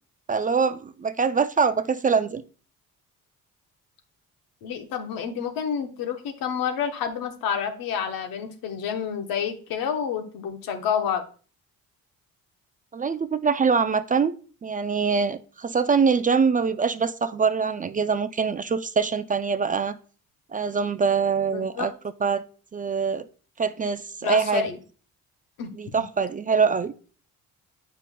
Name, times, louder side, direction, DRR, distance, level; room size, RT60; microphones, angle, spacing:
voice 1, 0.3-2.4 12.9-20.0 20.5-21.9 22.2-22.4 22.7-23.3 23.6-24.6 25.8-26.9, right 5 dB, 25° right, 11 dB, 0.3 m, -24 dB
voice 2, 4.6-11.2 21.5-21.9 24.2-24.8 25.6-25.7, left 7 dB, 80° left, 6 dB, 1.0 m, -29 dB
8.2 x 5.2 x 2.2 m, 0.40 s
supercardioid pair, 80°, 34 cm